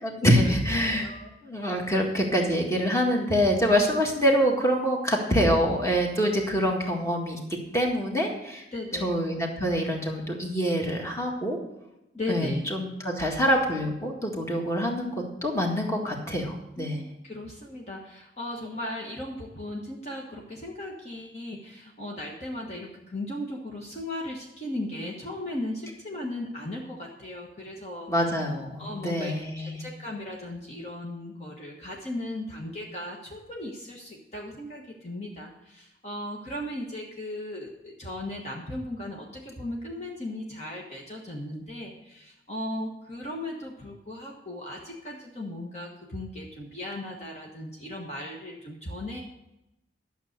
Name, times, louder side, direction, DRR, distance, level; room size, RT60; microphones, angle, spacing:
voice 1, 0.0-1.1 1.4-7.4 7.7-8.6 9.0-11.6 12.3-15.1 15.4-17.0 28.1-29.8, equal, 15° left, 0 dB, 1.8 m, -25 dB
voice 2, 0.9-1.3 8.7-9.3 12.1-12.6 13.2-13.3 16.8-28.1 28.8-49.2, left 1 dB, 35° left, -2 dB, 1.3 m, -37 dB
12.0 x 7.0 x 6.6 m, 0.90 s
head